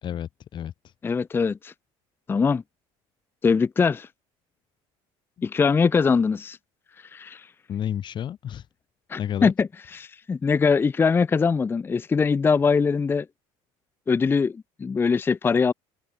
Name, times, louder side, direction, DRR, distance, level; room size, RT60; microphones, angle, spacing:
voice 1, 0.0-0.9 5.4-5.5 7.7-8.7 9.2-9.5, left 10 dB, 45° left, 1.9 m, -31 dB
voice 2, 1.0-1.7 2.3-2.6 3.4-4.1 5.4-6.6 7.1-7.5 9.1-9.7 10.0-13.3 14.1-15.7, left 5 dB, 20° left, 0.6 m, -22 dB
cardioid pair, 120°, 11 cm